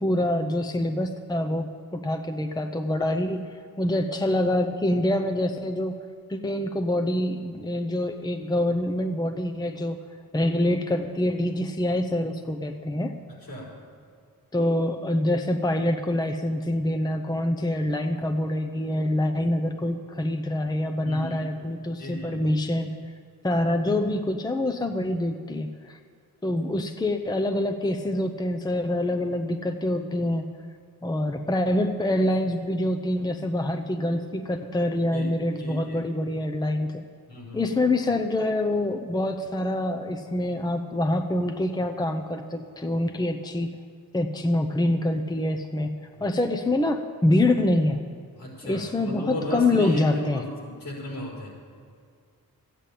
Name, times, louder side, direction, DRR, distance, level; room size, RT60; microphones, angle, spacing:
voice 1, 0.0-5.9 6.3-10.0 10.3-13.1 14.5-23.1 23.4-26.0 26.4-30.5 31.0-37.0 37.5-43.7 44.1-48.0 48.6-50.4, left 1 dB, 10° left, 6 dB, 0.7 m, -26 dB
voice 2, 13.3-13.8 21.0-21.4 22.0-22.5 35.1-35.3 35.6-36.0 37.3-37.7 46.2-46.3 48.3-51.5, equal, 70° left, -3 dB, 4.8 m, -35 dB
13.0 x 9.1 x 8.5 m, 2.2 s
wide cardioid pair, 95°, 35 cm